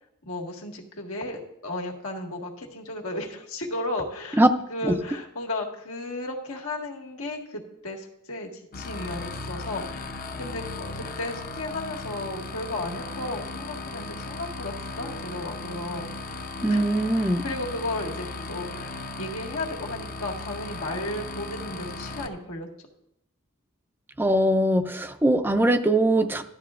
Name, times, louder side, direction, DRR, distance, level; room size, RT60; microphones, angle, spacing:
voice 1, 0.2-4.4 4.7-16.4 16.7-22.7, left 2 dB, 80° left, 0 dB, 1.8 m, -34 dB
sound 1, 8.7-22.3, left 2 dB, 40° left, 0.7 m, -36 dB
voice 2, 16.6-17.4 24.2-26.4, right 1 dB, 10° right, 8 dB, 0.4 m, -21 dB
13.5 x 12.0 x 2.5 m, 0.79 s
head